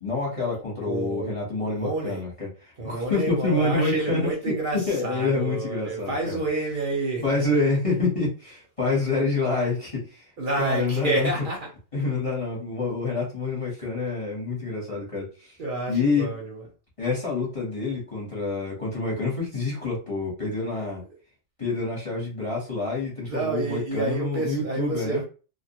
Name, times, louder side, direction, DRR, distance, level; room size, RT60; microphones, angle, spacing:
voice 1, 0.0-2.5 2.8-6.4 7.2-10.2 10.6-11.3 11.9-15.5 15.9-16.3 17.0-21.0 21.6-25.2, left 3 dB, 30° left, 0.9 m, -27 dB
voice 2, 0.9-1.4 1.6-2.2 2.8-7.5 10.4-11.7 15.6-16.6 23.2-25.2, right 2 dB, 50° right, 0.7 m, -29 dB
2.3 x 2.1 x 2.8 m
omnidirectional pair, 1.4 m